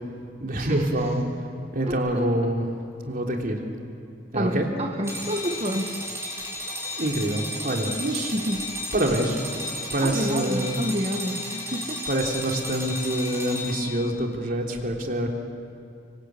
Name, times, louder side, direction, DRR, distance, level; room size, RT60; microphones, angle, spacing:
voice 1, 0.4-1.2 1.7-2.7 3.0-3.6 4.3-4.7 6.8-8.3 8.9-9.4 9.9-10.8 12.1-15.3, right 1 dB, 50° right, 1 dB, 3.4 m, -26 dB
voice 2, 1.8-2.3 4.3-6.1 8.3-8.7 10.0-12.1, equal, 35° right, 2 dB, 1.3 m, -29 dB
sound 1, 5.0-14.1, left 1 dB, 15° right, 4.9 m, -34 dB
26.0 x 25.0 x 8.5 m, 2.5 s
head